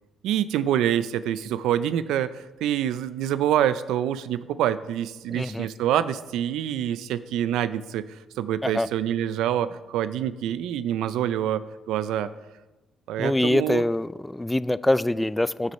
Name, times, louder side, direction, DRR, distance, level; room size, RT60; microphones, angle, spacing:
voice 1, 0.2-8.0 8.4-11.6 11.9-12.3 13.1-13.8, right 11 dB, 90° right, 14 dB, 0.4 m, -26 dB
voice 2, 5.3-5.7 8.6-8.9 13.2-15.7, left 1 dB, 10° left, 17 dB, 0.3 m, -24 dB
12.5 x 6.4 x 4.2 m, 1.1 s
cardioid pair, 90°, 0 cm